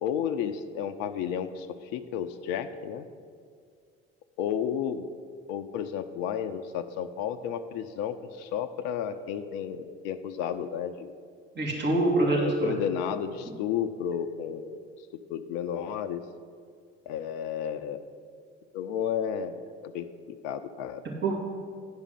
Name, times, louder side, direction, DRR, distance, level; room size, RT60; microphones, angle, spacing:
voice 1, 0.0-3.1 4.4-5.1 5.5-11.1 12.3-14.8 15.3-16.2 17.1-18.0 18.7-21.0, left 8 dB, 60° left, 10 dB, 0.5 m, -32 dB
voice 2, 11.6-12.8 21.2-21.4, right 2 dB, 35° right, -3 dB, 2.4 m, -25 dB
9.7 x 5.1 x 6.3 m, 2.1 s
hypercardioid pair, 60°, 31 cm